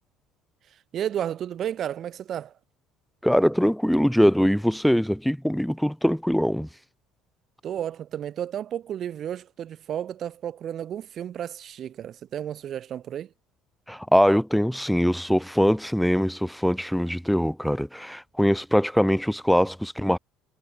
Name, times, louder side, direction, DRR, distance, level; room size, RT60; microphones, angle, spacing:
voice 1, 0.9-2.5 7.6-13.3, right 10 dB, 45° right, 1.6 m, -32 dB
voice 2, 3.2-6.7 13.9-20.2, equal, ahead, 0.7 m, -22 dB
figure-of-eight pair, 55°, 0 cm